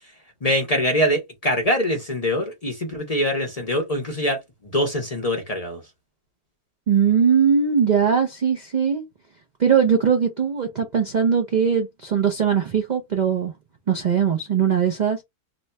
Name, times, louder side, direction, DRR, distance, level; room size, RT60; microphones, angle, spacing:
voice 1, 0.4-4.4 4.7-5.8, equal, 35° left, 0.6 m, -23 dB
voice 2, 6.9-9.0 9.6-13.5 13.9-15.2, right 7 dB, 75° right, 0.4 m, -20 dB
2.9 x 2.2 x 4.0 m
omnidirectional pair, 1.6 m